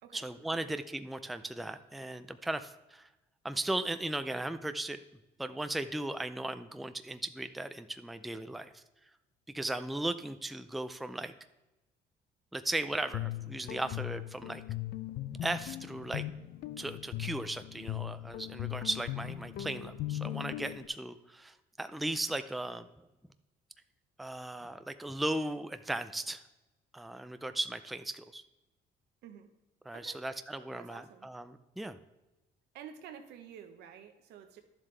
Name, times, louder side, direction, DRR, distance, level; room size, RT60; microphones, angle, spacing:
voice 1, 0.1-3.1 3.4-5.0 5.4-8.8 9.5-11.3 12.5-14.6 15.4-16.2 16.8-23.1 24.2-26.4 26.9-28.4 29.9-32.0, right 1 dB, ahead, 10 dB, 0.4 m, -37 dB
Guitar, 12.9-20.9, left 14 dB, 65° left, 0.5 m, -39 dB
voice 2, 30.5-31.3 32.7-34.6, right 8 dB, 80° right, 6 dB, 1.1 m, -50 dB
11.0 x 7.3 x 3.3 m, 1.0 s
cardioid pair, 110°, 17 cm